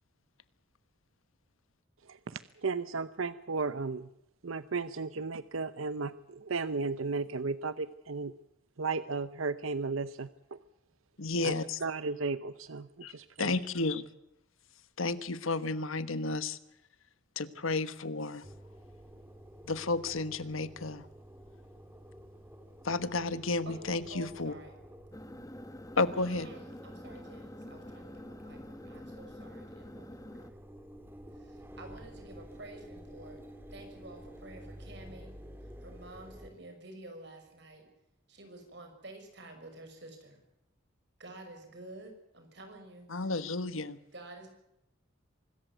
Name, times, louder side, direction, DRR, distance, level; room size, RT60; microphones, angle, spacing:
voice 1, 2.1-4.1 4.4-8.3 8.8-10.6 11.4-11.5 11.8-13.5, right 4 dB, 85° right, 14 dB, 0.8 m, -35 dB
voice 2, 11.2-11.8 13.0-13.1 13.4-14.0 15.0-16.6 17.4-18.4 19.7-21.0 22.8-24.5 26.0-26.5 43.1-44.0, left 3 dB, 85° left, 14 dB, 1.3 m, -32 dB
Engine, 18.4-36.5, equal, 10° right, 2.2 m, -51 dB
voice 3, 23.7-24.7 26.2-30.5 31.3-33.4 33.7-35.3 35.8-37.9 38.3-40.4 41.2-43.3 44.1-44.5, right 2 dB, 55° right, 5 dB, 5.9 m, -50 dB
sound 1, 25.1-30.5, left 1 dB, 15° left, 1.1 m, -47 dB
25.0 x 14.0 x 9.3 m, 0.86 s
head